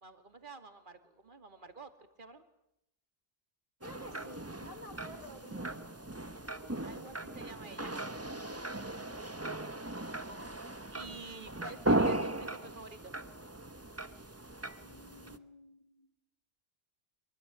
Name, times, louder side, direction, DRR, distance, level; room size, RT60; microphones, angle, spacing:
voice 1, 0.0-2.4 4.3-4.4 6.8-8.1 10.1-13.1, right 4 dB, 45° right, 9 dB, 2.7 m, -49 dB
voice 2, 3.8-6.0 9.0-9.2 14.8-16.1, equal, 30° left, 3 dB, 3.4 m, -52 dB
sound 1, 3.8-15.4, right 1 dB, 15° right, 1.1 m, -37 dB
24.5 x 23.0 x 8.5 m, 0.80 s
omnidirectional pair, 1.2 m